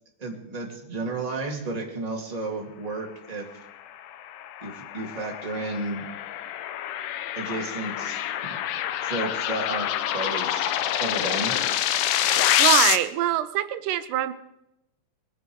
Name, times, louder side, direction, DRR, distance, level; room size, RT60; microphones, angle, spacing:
voice 1, 0.2-3.5 4.6-6.0 7.4-8.2 9.0-9.9 10.1-10.7 11.0-11.5, right 2 dB, 15° right, 0 dB, 2.0 m, -32 dB
sound 1, 4.1-13.0, left 11 dB, 85° left, 2.3 m, -26 dB
voice 2, 12.6-14.3, right 13 dB, 90° right, 11 dB, 2.4 m, -24 dB
21.5 x 10.0 x 4.7 m, 0.85 s
omnidirectional pair, 3.7 m